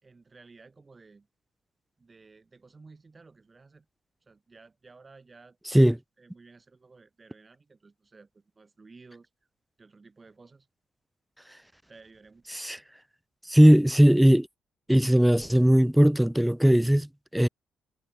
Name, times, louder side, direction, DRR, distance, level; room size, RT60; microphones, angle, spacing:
voice 1, 0.0-1.3 2.0-3.9 4.2-9.3 9.8-10.7 11.9-12.5, right 4 dB, 30° right, 6.4 m, -54 dB
voice 2, 13.5-14.5 14.9-17.5, equal, 5° right, 0.5 m, -19 dB
supercardioid pair, 65°, 0 cm